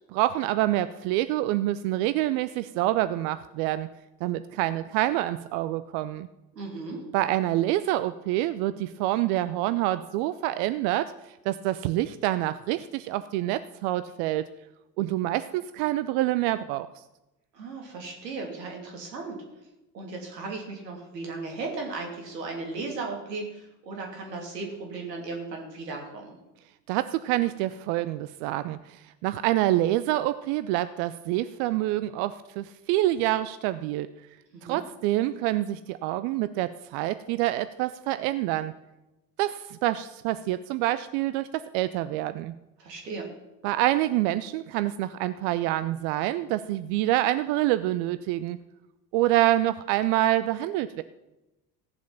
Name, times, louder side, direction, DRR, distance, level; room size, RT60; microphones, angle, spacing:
voice 1, 0.1-3.9 4.2-6.3 7.1-14.4 15.0-16.9 26.9-34.1 34.6-38.7 39.4-42.5 43.6-48.6 49.1-51.0, right 15 dB, 50° right, 14 dB, 0.6 m, -27 dB
voice 2, 6.5-7.0 17.5-19.4 19.9-26.4 34.5-34.8 42.8-43.3, right 3 dB, 75° right, 0 dB, 3.0 m, -36 dB
15.5 x 7.3 x 5.7 m, 0.98 s
figure-of-eight pair, 70°, 49 cm